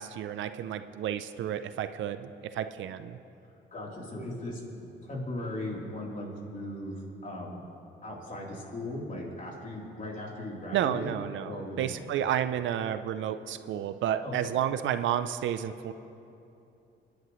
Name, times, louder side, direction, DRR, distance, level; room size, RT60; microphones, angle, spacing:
voice 1, 0.0-3.2 10.7-15.9, right 10 dB, 75° right, 11 dB, 0.5 m, -31 dB
voice 2, 3.7-7.6 8.0-11.1 11.4-12.0 14.2-14.3, left 1 dB, 40° left, -3 dB, 3.5 m, -38 dB
29.5 x 10.5 x 3.1 m, 2.8 s
cardioid pair, 90°, 20 cm